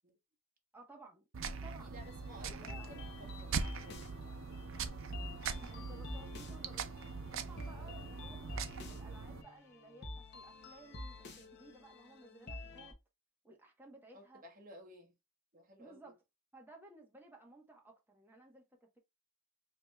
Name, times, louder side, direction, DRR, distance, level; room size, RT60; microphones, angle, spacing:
voice 1, 0.7-1.3 1.6-2.0 2.4-2.9 3.2-3.3 5.6-7.0 7.3-12.9 13.4-14.4 15.8-16.2 16.5-19.0, right 2 dB, 10° right, 1.1 m, -57 dB
sound 1, 1.3-9.4, right 5 dB, 65° right, 0.5 m, -42 dB
voice 2, 1.7-4.5 7.6-8.2 14.1-15.1 15.5-16.1, right 1 dB, 40° right, 1.3 m, -57 dB
sound 2, 1.9-12.9, left 2 dB, 50° left, 0.9 m, -50 dB
5.1 x 3.0 x 2.3 m
head